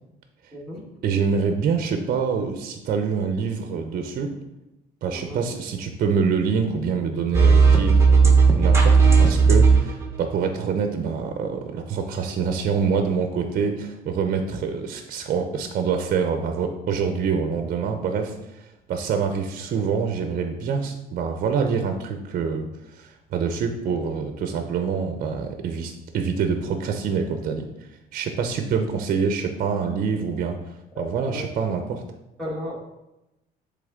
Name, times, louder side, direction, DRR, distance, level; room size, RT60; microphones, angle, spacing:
voice 1, 0.5-0.8 5.1-5.4 30.9-31.0 31.3-31.5 32.4-32.9, equal, ahead, -7 dB, 1.4 m, -34 dB
voice 2, 1.0-4.3 5.0-18.6 18.9-22.7 22.9-27.7 28.1-30.6 31.0-32.0, right 6 dB, 55° right, 6 dB, 0.7 m, -26 dB
sound 1, 7.3-10.0, right 5 dB, 15° right, 1.0 m, -15 dB
7.7 x 3.5 x 3.7 m, 0.93 s
cardioid pair, 110°, 17 cm